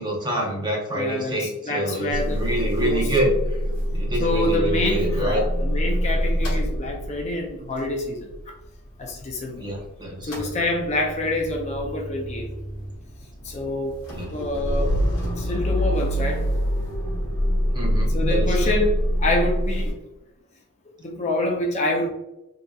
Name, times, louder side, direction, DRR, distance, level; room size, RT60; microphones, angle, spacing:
voice 1, 0.0-3.3 3.9-5.4 9.6-10.3 14.1-14.3 17.7-18.7, right 1 dB, 20° right, -2 dB, 0.7 m, -26 dB
voice 2, 0.9-2.4 2.8-3.3 4.2-8.3 9.0-9.6 10.2-12.5 13.4-14.0 14.3-15.0 15.4-16.4 18.1-19.9 21.0-22.1, left 1 dB, 30° left, 0 dB, 0.5 m, -26 dB
Motor vehicle (road) / Engine starting / Idling, 2.1-9.8 10.1-19.9, equal, 85° left, 1.0 m, -26 dB
3.8 x 2.7 x 2.3 m, 0.96 s
head